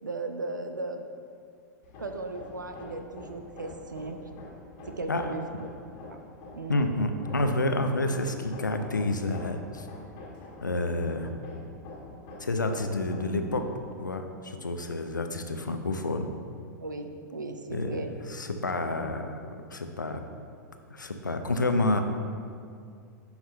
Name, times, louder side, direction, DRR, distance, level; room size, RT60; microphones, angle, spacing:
voice 1, 0.0-1.1 2.0-4.2 4.9-5.5 6.1-6.2 6.5-6.9 16.8-18.1, right 2 dB, 80° right, 6 dB, 0.5 m, -36 dB
Hammer, 1.8-13.9, left 2 dB, 40° left, 1.5 m, -46 dB
voice 2, 6.7-9.9 10.6-11.3 12.4-16.3 17.7-19.4 19.7-20.2 20.9-22.0, left 2 dB, 85° left, 6 dB, 0.5 m, -29 dB
9.5 x 5.7 x 2.2 m, 2.3 s
figure-of-eight pair, 95°, 10 cm